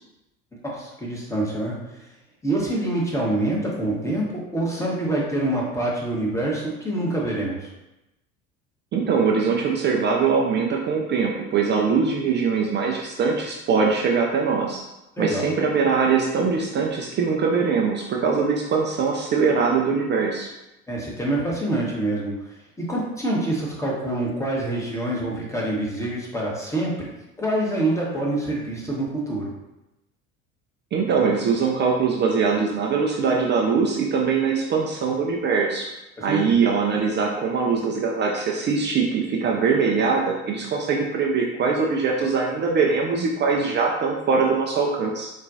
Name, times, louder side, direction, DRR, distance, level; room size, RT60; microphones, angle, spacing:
voice 1, 0.7-1.7 2.4-7.7 15.2-15.4 20.9-22.3 22.8-27.1 27.4-29.5 36.2-36.4, right 1 dB, 5° left, -4 dB, 1.0 m, -26 dB
voice 2, 8.9-14.8 15.2-20.5 30.9-35.9 36.2-45.3, right 5 dB, 30° right, -1 dB, 0.4 m, -22 dB
4.0 x 2.2 x 2.6 m, 0.95 s
hypercardioid pair, 65°, 40 cm